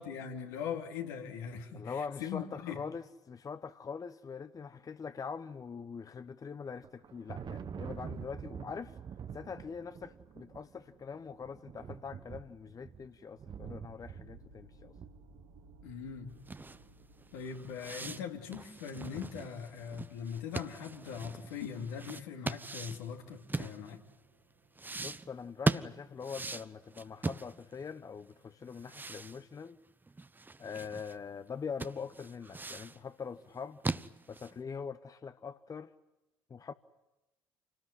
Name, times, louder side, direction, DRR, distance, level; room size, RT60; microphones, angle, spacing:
voice 1, 0.0-2.8 15.8-16.4 17.3-24.0, left 7 dB, 75° left, 2.8 m, -41 dB
voice 2, 1.7-9.0 9.3-14.9 25.0-29.8 30.6-34.0 34.3-35.9 36.5-36.7, left 6 dB, 35° left, 1.0 m, -43 dB
Thunder, 6.7-16.1, right 7 dB, 45° right, 1.3 m, -46 dB
sound 1, 13.7-25.6, right 1 dB, 75° right, 3.3 m, -62 dB
sound 2, 16.4-24.2 24.8-27.9 28.2-28.3 28.7-31.2 31.5-31.6 31.8-33.0 33.5-34.6, right 3 dB, 20° right, 0.9 m, -39 dB
28.0 x 19.0 x 9.7 m
hypercardioid pair, 55°, 11 cm